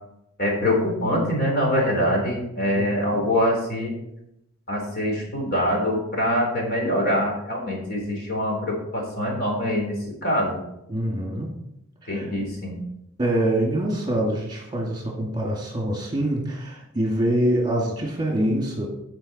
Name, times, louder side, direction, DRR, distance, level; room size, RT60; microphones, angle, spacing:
voice 1, 0.4-3.9 4.7-9.9 10.2-10.6 12.1-12.8, equal, 45° left, -1 dB, 3.5 m, -24 dB
voice 2, 10.9-11.5 12.0-12.3 13.2-18.9, right 1 dB, 20° right, -2 dB, 2.1 m, -25 dB
15.5 x 5.3 x 4.2 m, 0.82 s
head